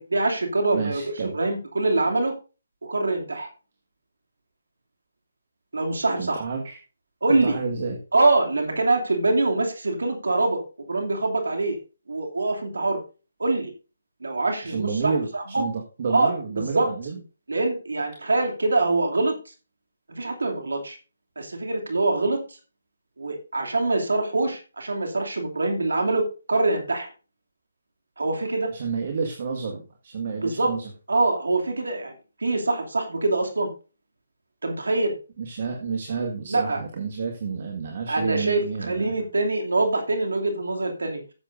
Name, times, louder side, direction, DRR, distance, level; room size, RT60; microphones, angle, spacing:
voice 1, 0.0-2.3 2.8-3.5 5.7-6.4 7.2-7.6 8.1-11.8 12.1-13.0 13.4-13.7 14.2-15.6 16.1-16.9 17.5-19.3 20.1-21.0 21.4-22.4 23.2-27.1 28.2-28.7 30.4-30.7 31.1-32.1 32.4-33.7 34.6-35.1 36.5-36.8 38.1-41.2, right 2 dB, 85° right, 4 dB, 2.7 m, -24 dB
voice 2, 0.7-1.4 6.2-6.8 7.3-8.0 14.6-17.2 28.7-30.9 35.4-39.1, right 5 dB, 50° right, 2 dB, 1.8 m, -30 dB
14.0 x 7.5 x 2.7 m, 0.33 s
hypercardioid pair, 155°, 0 cm